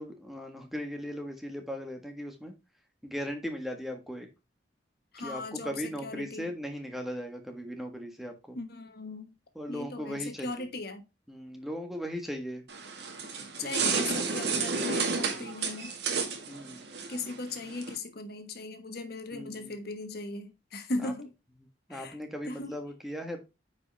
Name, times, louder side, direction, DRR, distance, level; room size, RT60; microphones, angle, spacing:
voice 1, 0.0-2.5 3.0-4.3 5.2-8.6 9.5-10.7 11.3-12.6 13.6-14.6 16.5-17.1 19.3-19.7 21.0-21.1 21.9-23.4, equal, ahead, 1.6 m, -38 dB
voice 2, 5.1-6.5 8.5-9.3 9.7-11.0 13.6-15.9 17.1-21.3 21.9-22.2 22.5-22.7, left 3 dB, 60° left, 1.3 m, -38 dB
sound 1, 12.7-17.9, right 4 dB, 65° right, 1.9 m, -31 dB
9.4 x 5.3 x 3.4 m
head